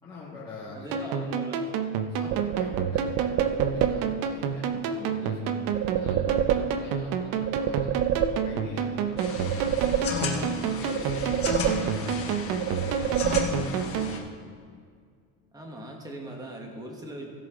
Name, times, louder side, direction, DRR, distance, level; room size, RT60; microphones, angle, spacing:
voice 1, 0.0-1.3 2.1-8.0 8.3-14.5, left 3 dB, 10° left, -9 dB, 1.8 m, -45 dB
voice 2, 0.7-1.6 5.0-5.4 10.8-11.1 13.8-13.9 15.5-17.2, right 1 dB, 10° right, 1 dB, 1.2 m, -40 dB
sound 1, 0.9-14.1, right 6 dB, 60° right, 0.8 m, -30 dB
sound 2, 2.3-4.3 5.7-7.1 7.4-8.8 9.2-10.5 10.9-12.2 12.6-14.0, right 9 dB, 45° right, 0.4 m, -28 dB
sound 3, 9.2-14.2, left 5 dB, 35° left, 1.3 m, -34 dB
16.5 x 7.4 x 3.7 m, 2.1 s
cardioid pair, 175°, 39 cm